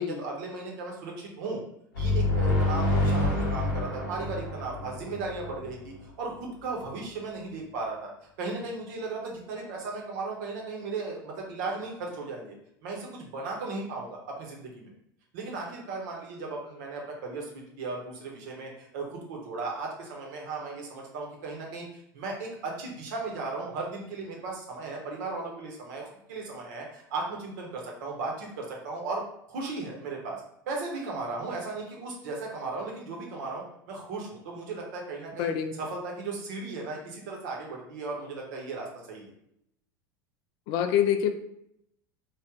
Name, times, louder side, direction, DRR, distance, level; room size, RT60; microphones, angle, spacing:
voice 1, 0.0-1.6 2.0-8.1 8.4-12.5 12.8-14.9 15.3-29.2 29.5-30.4 30.7-35.5 35.8-39.3, right 3 dB, 60° right, -1 dB, 1.1 m, -36 dB
sound 1, 2.0-5.7, left 2 dB, 65° left, 1.0 m, -27 dB
voice 2, 35.4-35.7 40.7-41.3, left 9 dB, 45° left, 8 dB, 0.4 m, -25 dB
3.2 x 2.5 x 3.7 m, 0.74 s
figure-of-eight pair, 75°, 11 cm